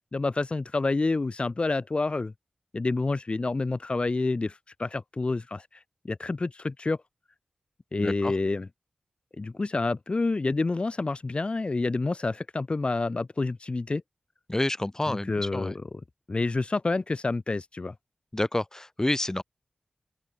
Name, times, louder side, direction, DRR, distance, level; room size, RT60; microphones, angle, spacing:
voice 1, 0.1-2.3 2.7-7.0 7.9-8.7 9.4-14.0 15.1-15.8 16.3-17.9, left 3 dB, 40° left, 1.5 m, -28 dB
voice 2, 8.0-8.4 14.5-15.7 18.3-19.4, left 1 dB, 20° left, 1.5 m, -29 dB
open air
wide cardioid pair, 75°, 3 cm